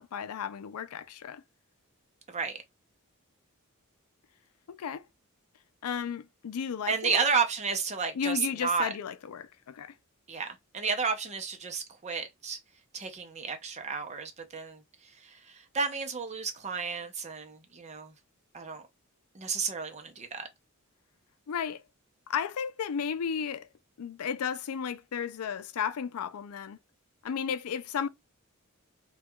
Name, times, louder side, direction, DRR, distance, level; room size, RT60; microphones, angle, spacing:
voice 1, 0.0-1.4 4.7-5.0 5.8-7.2 8.2-9.9 21.5-21.8 22.3-23.7 24.0-26.8 27.2-28.1, left 7 dB, 90° left, 0.4 m, -34 dB
voice 2, 2.3-2.6 6.9-8.9 10.3-12.6 12.9-18.1 18.5-18.9 19.3-20.5, right 5 dB, 30° right, 0.6 m, -32 dB
4.5 x 2.3 x 2.2 m
head